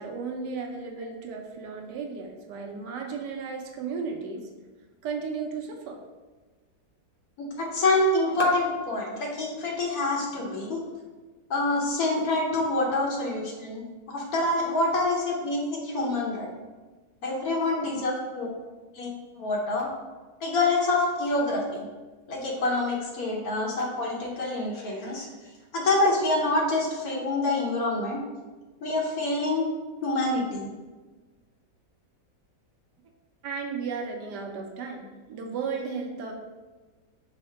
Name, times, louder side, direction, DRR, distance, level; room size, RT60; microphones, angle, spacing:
voice 1, 0.0-4.5 5.0-6.0 13.1-13.2 33.4-36.3, right 5 dB, 80° right, 2 dB, 1.2 m, -34 dB
voice 2, 7.4-10.8 11.5-16.5 17.2-18.5 18.9-19.1 19.4-19.9 20.4-21.8 22.3-25.3 25.7-28.2 28.8-29.7 30.0-30.7, left 2 dB, 65° left, -2 dB, 1.2 m, -26 dB
5.6 x 2.1 x 4.3 m, 1.3 s
omnidirectional pair, 1.8 m